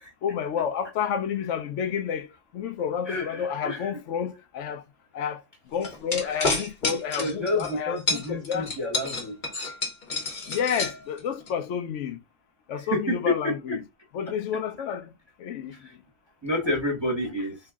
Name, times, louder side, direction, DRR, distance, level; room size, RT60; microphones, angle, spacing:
voice 1, 0.2-2.3 2.5-4.8 5.1-5.4 5.7-8.8 9.6-9.7 10.5-12.2 12.7-13.8 14.1-15.1 15.4-15.8, left 7 dB, 65° left, 0.8 m, -30 dB
voice 2, 3.1-3.9 6.2-6.3 6.9-9.4 12.9-13.8 15.8-15.9 16.4-17.6, left 1 dB, 20° right, 1.0 m, -29 dB
sound 1, 5.8-7.7 8.1-11.5, left 3 dB, 35° left, 1.0 m, -29 dB
3.4 x 2.8 x 3.5 m
omnidirectional pair, 1.7 m